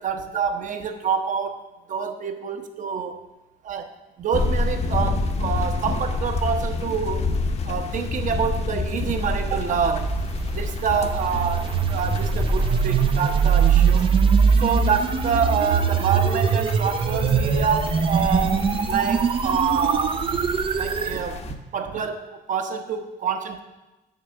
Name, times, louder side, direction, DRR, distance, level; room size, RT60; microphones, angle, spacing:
voice 1, 0.0-1.6 1.9-3.1 3.6-3.9 4.2-7.3 7.6-10.2 10.5-14.1 14.6-20.4 20.7-23.6, right 6 dB, 50° right, 7 dB, 1.0 m, -26 dB
sound 1, 4.3-21.5, left 3 dB, 40° left, 0.9 m, -29 dB
sound 2, 9.1-21.2, right 6 dB, 30° right, 0.5 m, -22 dB
7.8 x 5.9 x 6.6 m, 1.1 s
cardioid pair, 110°, 17 cm